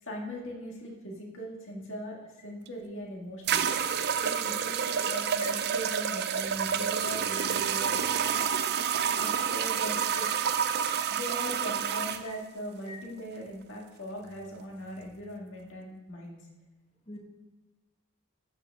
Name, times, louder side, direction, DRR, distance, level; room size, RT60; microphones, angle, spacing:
voice 1, 0.0-3.9 4.1-8.4 9.2-10.6 11.1-16.4, equal, 55° left, -1 dB, 1.9 m, -40 dB
sound 1, 2.7-2.8 3.5-12.2, right 8 dB, 45° right, 0.5 m, -29 dB
voice 2, 5.4-5.5 7.4-7.5 12.2-12.4 12.9-13.0 17.1-17.2, left 2 dB, 25° left, 1 dB, 1.4 m, -43 dB
13.0 x 6.6 x 3.6 m, 1.1 s
head